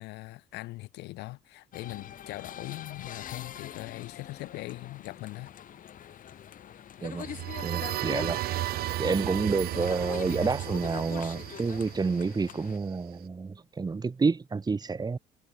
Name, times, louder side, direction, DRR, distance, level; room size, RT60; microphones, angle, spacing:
voice 1, 0.0-5.5, left 20 dB, 90° left, 2.2 m, -41 dB
sound 1, 1.7-12.8, left 10 dB, 50° left, 3.0 m, -43 dB
voice 2, 7.0-7.3 7.6-8.4 9.0-15.2, right 4 dB, 25° right, 2.4 m, -29 dB
sound 2, 7.2-12.9, right 15 dB, 65° right, 0.6 m, -34 dB
cardioid pair, 110°, 17 cm